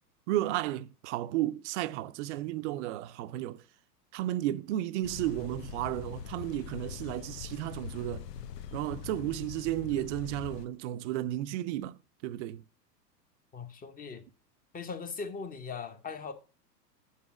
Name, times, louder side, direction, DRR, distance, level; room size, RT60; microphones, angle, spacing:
voice 1, 0.3-3.6 4.1-8.3 8.7-12.6, right 14 dB, 45° right, 0.5 m, -33 dB
sound 1, 5.0-10.7, left 8 dB, 75° left, 0.8 m, -43 dB
voice 2, 13.5-14.3 14.7-16.3, left 5 dB, 15° left, 0.8 m, -39 dB
6.7 x 5.6 x 5.9 m
hypercardioid pair, 105°, 49 cm